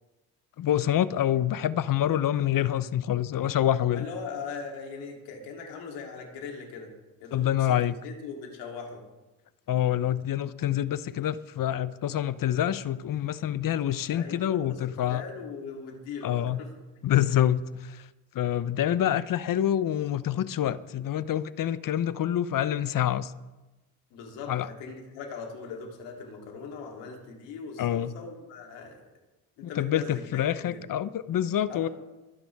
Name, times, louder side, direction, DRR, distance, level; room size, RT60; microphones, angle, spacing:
voice 1, 0.6-4.1 7.3-7.9 9.7-15.2 16.2-16.6 17.0-18.0 18.3-23.3 24.5-24.7 27.8-28.1 29.8-31.9, left 11 dB, 50° left, 16 dB, 0.9 m, -26 dB
voice 2, 3.9-6.9 7.2-7.8 8.0-9.0 14.1-16.7 24.1-29.0 29.6-30.8 31.7-31.9, left 5 dB, 80° left, 1 dB, 3.4 m, -40 dB
24.0 x 10.0 x 3.6 m, 1.1 s
hypercardioid pair, 60°, 43 cm